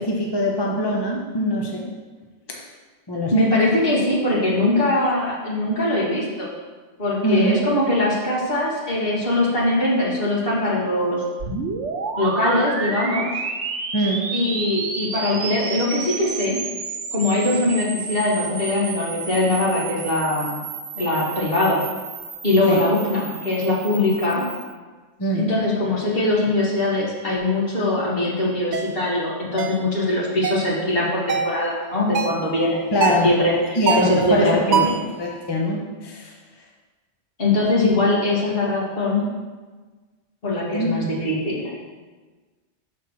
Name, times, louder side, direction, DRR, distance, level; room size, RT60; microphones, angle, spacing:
voice 1, 0.0-1.8 2.5-2.6 3.1-3.4 7.2-7.6 13.9-14.2 22.7-22.8 25.2-25.5 32.9-33.3 33.8-34.9 35.2-36.3 40.7-40.9, equal, 25° left, -1 dB, 0.7 m, -22 dB
voice 2, 3.3-6.5 7.0-11.6 12.2-13.3 14.3-16.6 17.1-20.6 21.0-21.9 22.4-24.5 25.4-32.8 33.2-35.0 37.4-39.3 40.4-41.7, left 1 dB, 50° left, -5 dB, 2.0 m, -22 dB
sound 1, 11.4-24.7, right 5 dB, 85° right, 1.1 m, -31 dB
sound 2, 28.7-28.9 29.6-29.8 30.4-30.7 31.3-31.6 32.1-32.5 33.0-33.3 33.9-34.2 34.7-35.1, right 6 dB, 55° right, 0.5 m, -23 dB
6.3 x 4.3 x 6.2 m, 1.4 s
omnidirectional pair, 1.2 m